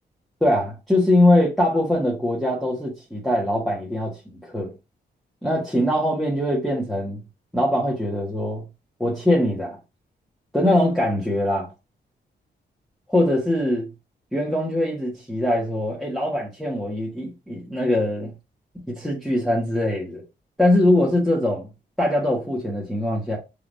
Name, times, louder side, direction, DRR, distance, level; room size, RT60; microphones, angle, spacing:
voice 1, 0.4-4.7 5.4-7.2 7.5-8.7 9.0-9.8 10.5-11.7 13.1-13.9 14.3-18.3 18.9-20.2 20.6-21.7 22.0-23.4, left 1 dB, ahead, 1.5 m, -22 dB
4.6 x 3.5 x 2.7 m
cardioid pair, 90°, 18 cm